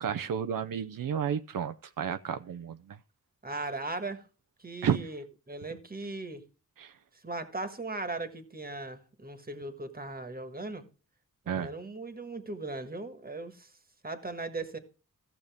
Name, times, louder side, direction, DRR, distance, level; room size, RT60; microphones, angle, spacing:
voice 1, 0.0-3.0 4.8-5.1 6.8-6.9 11.5-11.7, right 8 dB, 80° right, 0.5 m, -32 dB
voice 2, 3.4-4.2 4.6-6.4 7.1-10.9 11.5-13.8 14.0-14.8, right 2 dB, 25° right, 1.4 m, -38 dB
14.5 x 6.8 x 3.5 m
wide cardioid pair, 70°, 33 cm